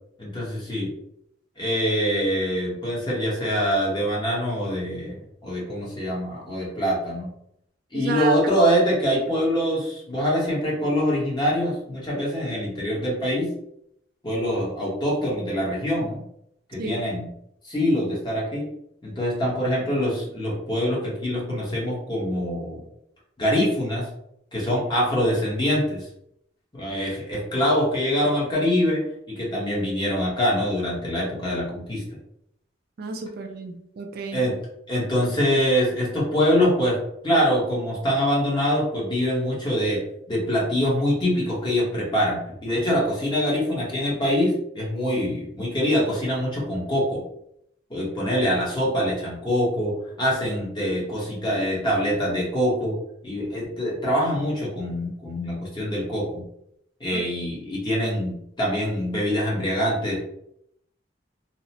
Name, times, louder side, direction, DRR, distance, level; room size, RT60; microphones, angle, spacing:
voice 1, 0.2-0.9 1.6-7.3 7.9-13.5 14.2-16.2 16.7-17.3 17.6-18.6 19.0-22.8 23.4-24.1 24.5-26.0 26.7-29.0 29.3-32.0 34.3-34.5 34.9-40.0 40.3-47.2 47.9-53.0 53.2-56.4 57.0-60.3, equal, 25° left, -5 dB, 1.0 m, -24 dB
voice 2, 7.9-8.4 16.8-16.9 33.0-34.4 57.1-57.2, right 4 dB, 55° right, 4 dB, 0.3 m, -31 dB
2.8 x 2.1 x 2.8 m, 0.74 s
head